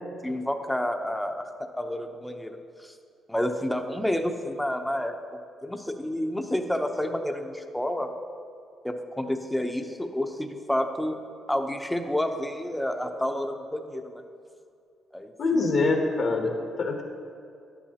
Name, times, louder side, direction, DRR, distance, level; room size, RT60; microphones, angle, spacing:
voice 1, 0.2-2.9 3.3-8.1 8.8-11.2 11.5-14.2 15.1-15.3, left 1 dB, 5° left, 5 dB, 0.7 m, -30 dB
voice 2, 15.4-17.0, left 3 dB, 55° left, 2 dB, 1.1 m, -24 dB
11.0 x 10.5 x 2.9 m, 2.4 s
cardioid pair, 90°, 0 cm